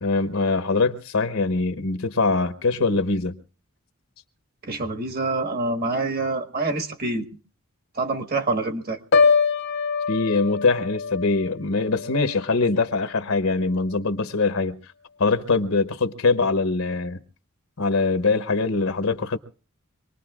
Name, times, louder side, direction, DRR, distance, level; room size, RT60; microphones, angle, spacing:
voice 1, 0.0-3.4 10.1-14.8 15.2-17.2 17.8-19.4, left 3 dB, 75° left, 0.9 m, -23 dB
voice 2, 4.6-7.2 8.0-9.0, right 3 dB, 45° right, 1.5 m, -26 dB
Piano, 9.1-13.1 13.5-13.8, left 5 dB, 55° left, 0.7 m, -24 dB
25.0 x 19.5 x 2.4 m
head